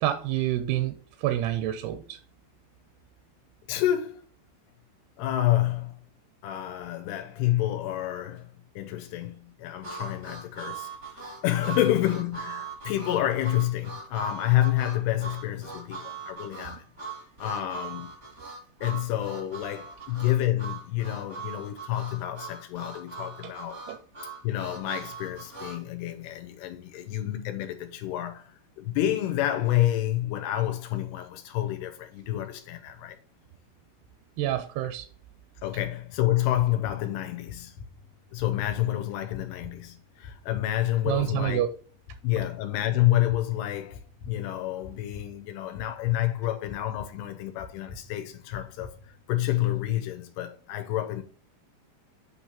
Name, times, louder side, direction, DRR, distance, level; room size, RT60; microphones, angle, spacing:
voice 1, 0.0-2.2 23.4-23.5 23.9-24.0 34.4-35.1 41.1-41.7, right 13 dB, 85° right, 2.4 m, -28 dB
voice 2, 3.7-4.2 5.2-6.0 6.4-8.5 8.8-10.9 11.2-16.8 17.4-18.1 18.8-23.8 24.4-33.2 35.6-37.7 38.3-41.7 42.2-44.0 44.3-48.9 49.3-51.2, left 13 dB, 80° left, 2.7 m, -28 dB
Harmonica, 9.8-25.8, right 5 dB, 60° right, 0.7 m, -41 dB
sound 1, 36.1-49.2, left 4 dB, 60° left, 2.7 m, -47 dB
8.8 x 3.2 x 4.3 m
omnidirectional pair, 4.7 m